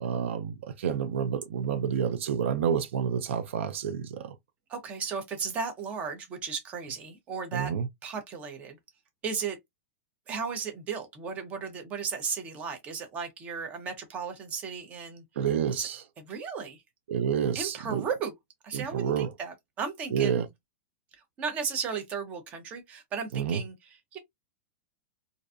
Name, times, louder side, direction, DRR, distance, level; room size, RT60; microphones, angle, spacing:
voice 1, 0.0-4.4 7.5-7.9 15.4-16.0 17.1-18.0 18.7-19.3 20.1-20.5 23.3-23.6, right 8 dB, 80° right, 0.4 m, -29 dB
voice 2, 4.7-7.7 8.0-8.8 9.2-9.6 10.3-15.2 15.8-15.9 16.2-16.8 17.5-18.3 18.6-20.4 21.4-23.7 24.1-24.2, right 6 dB, 20° right, 0.6 m, -35 dB
2.5 x 2.2 x 2.4 m
supercardioid pair, 165°, 7 cm